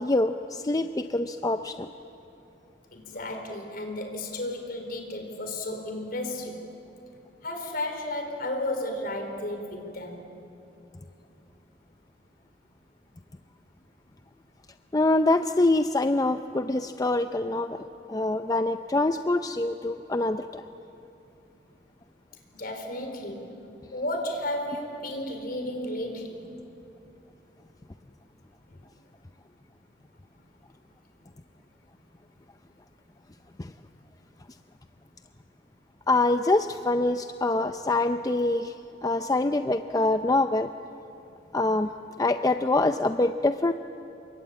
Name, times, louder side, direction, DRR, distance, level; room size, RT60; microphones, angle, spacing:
voice 1, 0.0-1.9 14.9-17.8 18.1-20.6 33.6-33.7 36.1-38.7 39.0-40.7 41.5-41.9 42.2-43.7, left 2 dB, 20° left, 8 dB, 0.5 m, -25 dB
voice 2, 2.9-6.6 7.4-10.2 22.5-23.5 23.9-26.4 28.7-28.8, left 1 dB, 55° left, 5 dB, 4.2 m, -33 dB
28.5 x 24.0 x 8.5 m, 2.8 s
head